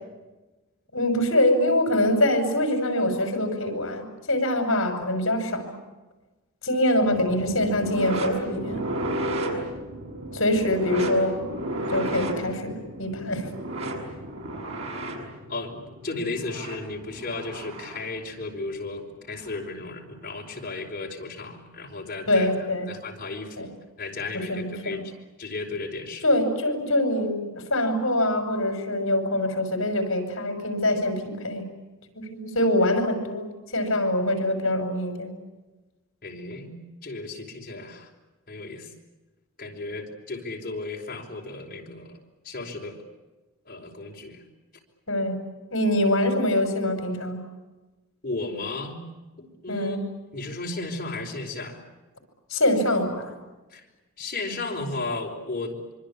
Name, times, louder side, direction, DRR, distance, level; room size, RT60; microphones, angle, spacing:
voice 1, 0.9-5.8 6.6-8.8 10.3-11.4 11.9-13.5 22.3-22.9 23.6-23.7 24.5-25.0 26.2-31.6 32.1-35.3 45.1-45.4 45.7-47.4 49.7-50.0 52.5-53.3, left 1 dB, 65° left, 6 dB, 6.1 m, -24 dB
sound 1, 7.1-18.1 19.4-19.6 20.5-20.6, right 1 dB, 70° right, 6.6 m, -33 dB
voice 2, 15.5-25.1 25.4-26.3 36.2-36.7 37.0-38.1 38.5-38.9 39.6-42.1 42.4-43.0 43.6-44.4 48.2-49.0 49.4-50.0 50.3-51.8 53.7-53.8 54.2-55.9, left 3 dB, 40° left, 0 dB, 5.0 m, -34 dB
25.5 x 24.5 x 8.6 m, 1.1 s
head